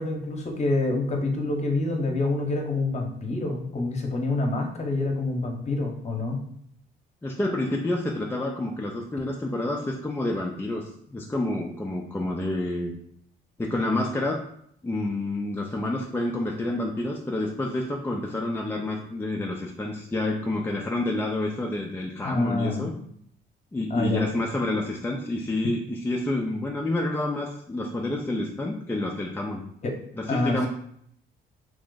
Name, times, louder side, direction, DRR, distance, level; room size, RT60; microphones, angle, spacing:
voice 1, 0.0-6.4 22.2-22.9 23.9-24.2 29.8-29.9 30.3-30.7, left 2 dB, 35° left, 2 dB, 0.9 m, -27 dB
voice 2, 7.2-12.9 13.6-14.4 14.8-22.9 23.7-29.6 30.2-30.7, left 2 dB, 10° left, -1 dB, 0.4 m, -28 dB
3.0 x 2.5 x 3.8 m, 0.67 s
cardioid pair, 90°, 20 cm